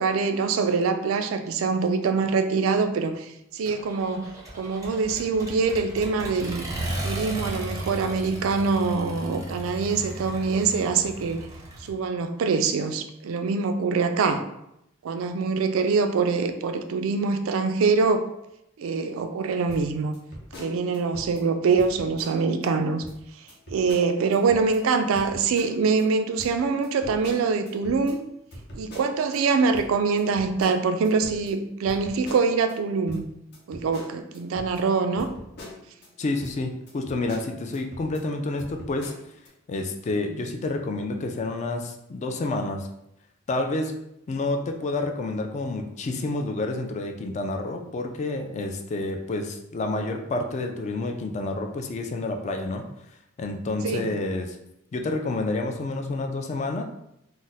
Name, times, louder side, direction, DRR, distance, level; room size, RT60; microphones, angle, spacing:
voice 1, 0.0-6.6 7.0-11.4 11.8-14.4 15.0-18.2 18.8-20.1 20.6-23.0 23.7-28.2 28.7-33.3 33.7-35.3 53.8-54.1, right 4 dB, 80° right, 7 dB, 0.3 m, -24 dB
Accelerating revving vroom, 3.7-11.9, right 1 dB, 15° right, 0.5 m, -35 dB
sound 1, 19.7-21.5 21.8-22.7 23.0-23.2 23.5-24.8 25.1-26.0 26.4-29.4 29.7-32.8 33.1-36.1 36.4-36.6 36.9-38.3 38.6-39.5, left 1 dB, 55° left, 0.7 m, -43 dB
voice 2, 36.2-39.1 39.7-42.9 43.5-43.9 44.3-52.8 53.4-54.6 54.9-56.8, left 2 dB, 35° left, 4 dB, 0.3 m, -29 dB
2.4 x 2.1 x 3.9 m, 0.82 s
head